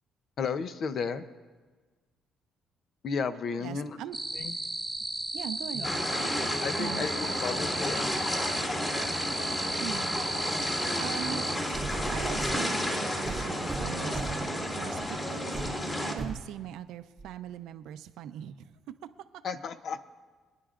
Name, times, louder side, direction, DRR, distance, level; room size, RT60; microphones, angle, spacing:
voice 1, 0.4-1.2 3.0-4.0 4.3-4.6 5.7-5.9 6.6-9.0 19.4-20.1, left 5 dB, 55° left, 11 dB, 0.7 m, -34 dB
voice 2, 3.6-4.4 5.3-5.9 6.8-7.1 9.8-10.2 10.5-11.5 12.1-15.0 15.2-15.5 16.0-18.7, right 11 dB, 80° right, 10 dB, 0.6 m, -40 dB
sound 1, 4.1-11.6, right 1 dB, 10° right, 0.4 m, -34 dB
sound 2, 5.8-16.1, equal, 25° left, 2.2 m, -32 dB
sound 3, 11.7-12.6 13.3-14.5 15.0-15.2 15.5-15.8 16.2-16.5 17.2-17.3, right 4 dB, 30° right, 0.8 m, -37 dB
25.5 x 10.0 x 2.5 m, 1.4 s
cardioid pair, 85°, 0 cm